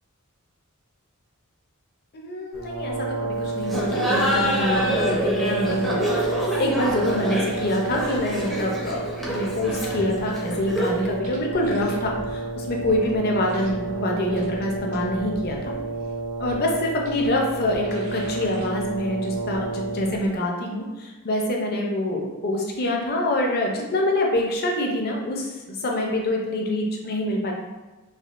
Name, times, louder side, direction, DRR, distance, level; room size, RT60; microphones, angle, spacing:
voice 1, 2.1-15.7 16.4-27.5, left 1 dB, 45° left, 0 dB, 0.5 m, -26 dB
Brass instrument, 2.5-20.3, right 3 dB, 60° right, 0.6 m, -31 dB
Laughter, 3.6-11.1, equal, ahead, 0.5 m, -27 dB
sound 1, 7.2-9.1 9.6-10.8 11.0-12.4 12.7-13.9 14.3-15.9 16.5-16.6 17.1-17.3 17.7-18.7 19.0-19.1, right 1 dB, 80° right, 1.0 m, -44 dB
3.5 x 2.4 x 2.4 m, 1.2 s
head